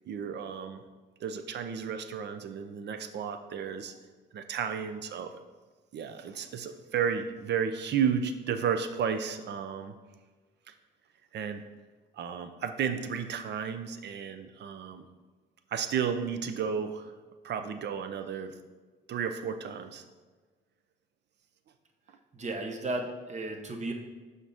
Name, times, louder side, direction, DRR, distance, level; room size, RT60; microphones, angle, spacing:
voice 1, 0.0-0.8 1.2-3.9 4.3-5.4 5.9-10.0 11.3-11.6 12.1-15.1 15.7-17.1 17.4-18.6 19.1-20.0, right 7 dB, 60° right, 9 dB, 0.6 m, -33 dB
voice 2, 22.3-23.9, right 2 dB, 35° right, 4 dB, 1.0 m, -34 dB
6.1 x 5.6 x 3.5 m, 1.4 s
cardioid pair, 90°, 20 cm